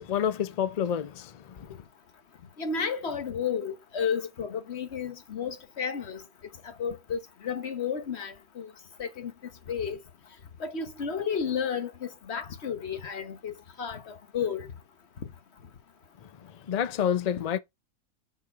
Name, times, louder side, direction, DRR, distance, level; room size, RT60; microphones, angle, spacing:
voice 1, 0.0-1.7 16.7-17.6, left 9 dB, 80° left, 0.3 m, -28 dB
voice 2, 2.6-6.2 6.8-7.2 7.4-8.7 9.0-9.3 9.7-10.0 10.6-13.5 13.8-14.7, left 6 dB, 50° left, 1.3 m, -32 dB
6.6 x 6.1 x 2.4 m
omnidirectional pair, 1.5 m